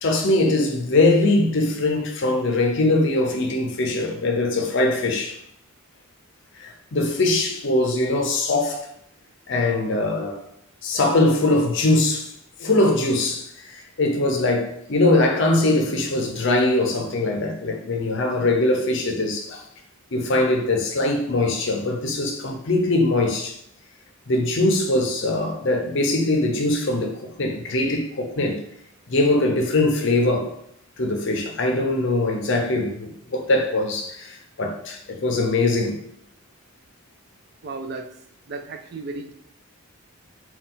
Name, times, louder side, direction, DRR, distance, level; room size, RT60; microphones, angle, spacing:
voice 1, 0.0-5.4 6.6-8.9 9.5-10.4 10.8-12.3 12.6-19.7 20.1-23.6 24.3-28.6 29.1-30.5 31.0-36.0, left 2 dB, 55° left, 0.6 m, -22 dB
voice 2, 37.6-38.1 38.5-39.3, right 3 dB, 45° right, 0.4 m, -34 dB
3.8 x 2.3 x 3.8 m
head